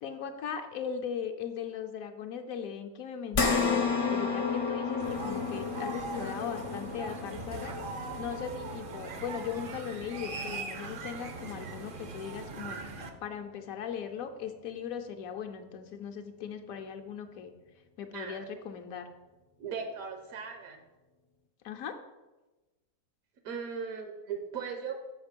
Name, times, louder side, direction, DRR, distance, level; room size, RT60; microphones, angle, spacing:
voice 1, 0.0-7.8 8.2-12.8 13.2-17.5 18.0-19.1 21.6-22.0, left 7 dB, 70° left, 5 dB, 1.0 m, -39 dB
sound 1, 3.3-11.9 12.4-12.5 13.9-14.0, left 5 dB, 55° left, 0.3 m, -33 dB
sound 2, 5.0-13.1, right 3 dB, 55° right, 0.6 m, -40 dB
voice 2, 18.1-18.4 19.6-20.8 23.4-24.9, right 6 dB, 70° right, 5 dB, 1.1 m, -38 dB
6.5 x 4.8 x 5.1 m, 1.1 s
omnidirectional pair, 1.6 m